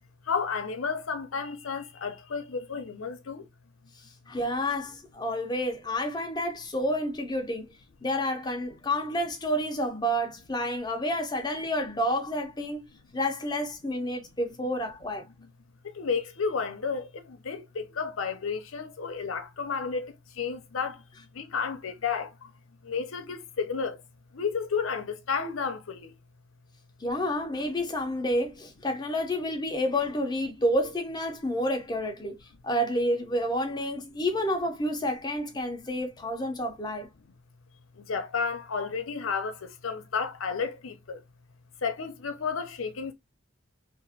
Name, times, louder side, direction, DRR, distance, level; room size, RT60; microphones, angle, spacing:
voice 1, 0.3-3.4 16.0-17.1 17.4-21.0 21.4-22.3 22.9-24.0 24.3-26.1 38.1-39.6 39.8-41.2 41.8-43.1, left 5 dB, 80° left, 0.6 m, -31 dB
voice 2, 4.3-7.8 8.0-12.9 13.1-15.3 27.0-32.4 32.6-37.1, equal, 20° left, 0.6 m, -29 dB
2.9 x 2.5 x 2.7 m
head